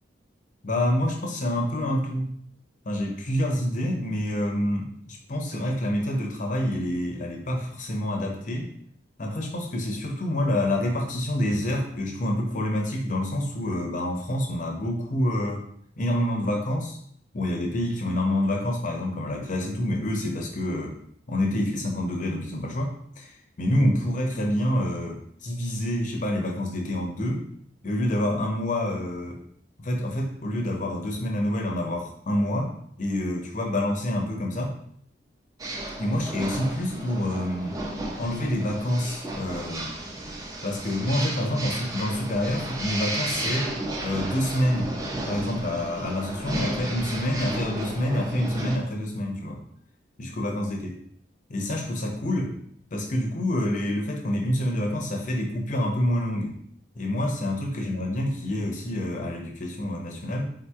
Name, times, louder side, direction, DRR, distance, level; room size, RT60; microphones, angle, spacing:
voice 1, 0.6-2.3 2.9-8.7 9.2-15.6 16.0-17.0 17.3-21.0 21.3-23.3 23.6-27.4 27.8-29.4 29.8-32.7 33.0-34.7 36.0-37.8 38.2-39.9 40.6-43.7 44.0-44.9 45.3-49.6 50.2-50.9 51.5-52.5 52.9-56.5 56.9-60.5, left 1 dB, 45° left, 1 dB, 0.6 m, -27 dB
sound 1, 35.6-48.8, right 1 dB, 20° right, 0.4 m, -33 dB
3.8 x 2.8 x 2.3 m, 0.67 s
head